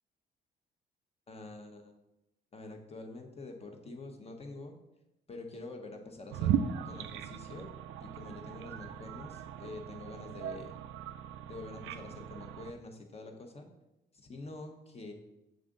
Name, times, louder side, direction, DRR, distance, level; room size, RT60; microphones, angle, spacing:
voice 1, 1.3-1.9 2.5-4.7 5.3-6.5 6.8-7.7 8.0-10.8 11.5-13.7 14.1-15.1, left 2 dB, 30° left, 3 dB, 1.0 m, -46 dB
sound 1, 6.3-12.7, right 9 dB, 80° right, 0.4 m, -37 dB
6.7 x 3.7 x 3.7 m, 0.93 s
cardioid pair, 90°, 20 cm